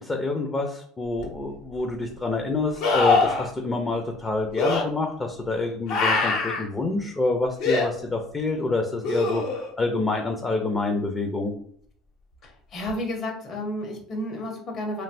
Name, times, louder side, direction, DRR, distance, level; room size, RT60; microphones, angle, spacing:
voice 1, 0.0-11.5, left 3 dB, 25° left, 3 dB, 0.5 m, -27 dB
sound 1, 1.2-1.3 2.8-3.5 4.6-4.8 5.9-6.6 7.6-7.9 9.0-9.7 12.9-13.0, left 3 dB, 65° left, 0.8 m, -23 dB
voice 2, 12.4-15.0, left 1 dB, 50° left, 1 dB, 1.2 m, -32 dB
3.1 x 2.7 x 2.6 m, 0.62 s
hypercardioid pair, 75°, 0 cm